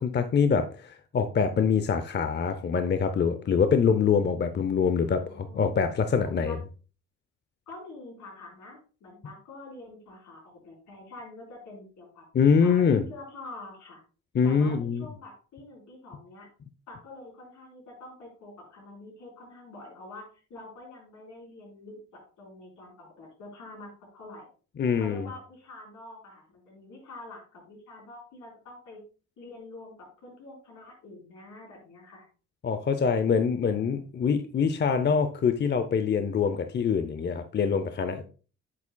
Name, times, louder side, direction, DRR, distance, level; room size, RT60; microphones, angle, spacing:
voice 1, 0.0-6.6 12.3-13.0 14.3-15.0 24.8-25.3 32.6-38.2, left 6 dB, 35° left, 9 dB, 0.6 m, -24 dB
voice 2, 5.0-5.7 6.2-6.6 7.7-12.2 12.6-14.0 14.4-16.5 16.9-24.5 25.0-29.0 29.4-29.9 30.2-32.3, left 2 dB, 75° left, -1 dB, 4.3 m, -46 dB
8.4 x 7.1 x 2.2 m, 0.37 s
cardioid pair, 90°, 30 cm